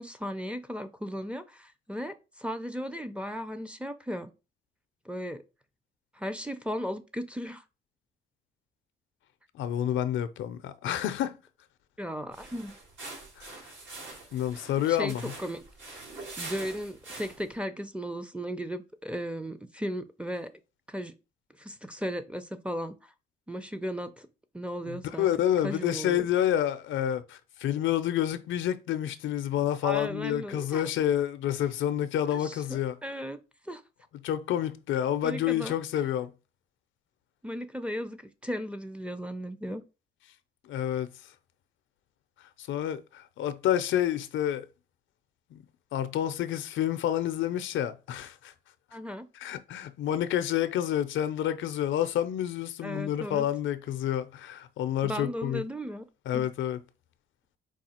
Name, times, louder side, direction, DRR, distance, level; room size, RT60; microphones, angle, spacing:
voice 1, 0.0-4.3 5.1-5.4 6.1-7.6 12.0-12.8 14.9-15.6 16.4-20.5 20.9-21.1 21.6-23.1 23.5-24.3 24.5-25.3 25.6-26.3 29.8-30.9 32.3-33.4 33.6-33.8 35.2-35.7 37.4-39.8 48.9-49.3 52.8-53.5 55.0-56.0 56.3-56.5, equal, 5° right, 0.5 m, -36 dB
voice 2, 9.5-11.4 13.4-13.6 14.3-15.3 24.9-33.0 34.2-36.3 40.7-41.1 42.6-44.7 45.5-45.6 45.9-48.5 49.3-55.6 56.3-56.8, left 11 dB, 75° left, 0.5 m, -29 dB
sound 1, 12.3-17.6, right 2 dB, 70° right, 2.8 m, -44 dB
4.7 x 2.4 x 4.3 m
cardioid pair, 90°, 20 cm